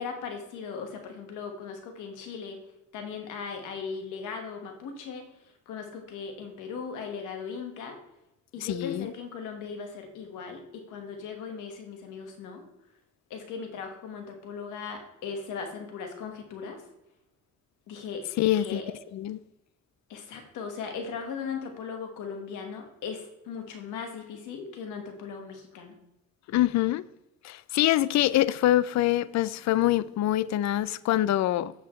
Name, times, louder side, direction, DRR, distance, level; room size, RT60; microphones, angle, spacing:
voice 1, 0.0-2.6 2.9-5.3 5.7-8.0 8.5-12.6 13.3-16.8 17.9-18.2 18.5-18.9 20.1-25.9, left 5 dB, 90° left, 1.5 m, -38 dB
voice 2, 8.6-9.1 18.4-18.8 19.1-19.4 26.5-27.0 27.4-31.7, left 14 dB, 65° left, 0.4 m, -25 dB
8.4 x 6.9 x 3.1 m
cardioid pair, 90°, 30 cm